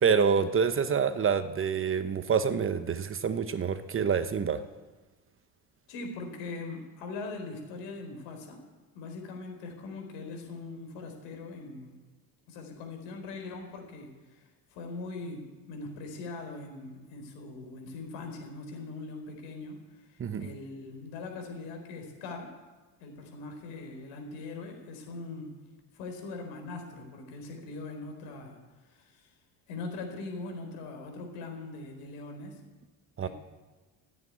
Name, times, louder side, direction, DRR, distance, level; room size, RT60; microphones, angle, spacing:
voice 1, 0.0-4.6 20.2-20.5 33.2-33.3, right 6 dB, 30° right, 11 dB, 1.0 m, -27 dB
voice 2, 5.9-8.6 8.9-12.0 12.5-22.5 23.0-25.5 25.9-28.6 28.9-29.3 29.7-32.6 33.2-33.3, left 3 dB, 85° left, 3 dB, 4.3 m, -41 dB
15.5 x 8.9 x 9.8 m, 1.3 s
cardioid pair, 110°, 41 cm